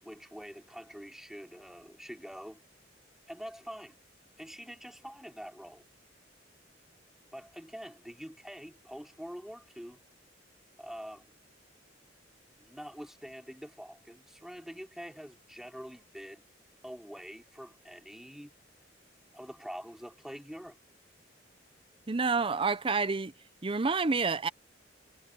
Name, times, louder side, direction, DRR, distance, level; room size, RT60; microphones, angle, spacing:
voice 1, 0.0-2.6 3.3-4.0 4.4-5.8 7.3-10.0 10.8-11.4 12.6-16.4 16.8-18.5 19.3-20.8, equal, ahead, 3.0 m, -45 dB
voice 2, 22.1-23.3 23.6-24.5, right 4 dB, 30° right, 0.6 m, -28 dB
head